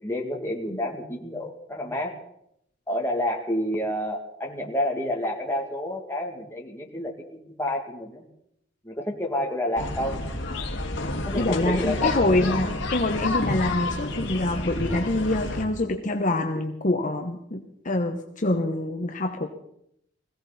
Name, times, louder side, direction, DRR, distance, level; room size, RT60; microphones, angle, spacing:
voice 1, 0.0-2.2 2.9-8.2 8.8-10.2 11.3-12.6, left 1 dB, 15° left, 0 dB, 2.4 m, -29 dB
sound 1, 9.8-15.6, left 2 dB, 70° left, 2.5 m, -29 dB
voice 2, 11.3-19.5, left 2 dB, 45° left, 4 dB, 1.1 m, -26 dB
21.0 x 16.0 x 4.2 m, 0.75 s
head